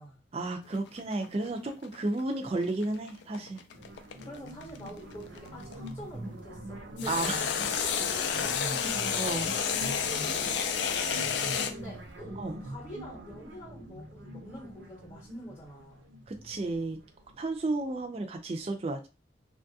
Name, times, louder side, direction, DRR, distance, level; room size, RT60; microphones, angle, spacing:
voice 1, 0.3-3.6 7.1-7.5 9.2-9.5 12.4-12.6 16.3-17.0 17.4-19.1, right 2 dB, 35° right, 4 dB, 0.3 m, -32 dB
sound 1, 0.7-5.9 7.0-11.7, left 7 dB, 75° left, 0.4 m, -31 dB
sound 2, 3.7-17.5, right 1 dB, 85° right, 0.6 m, -43 dB
voice 2, 4.2-7.4 7.8-16.1, equal, 25° left, -1 dB, 0.8 m, -46 dB
3.0 x 2.3 x 2.6 m, 0.30 s
head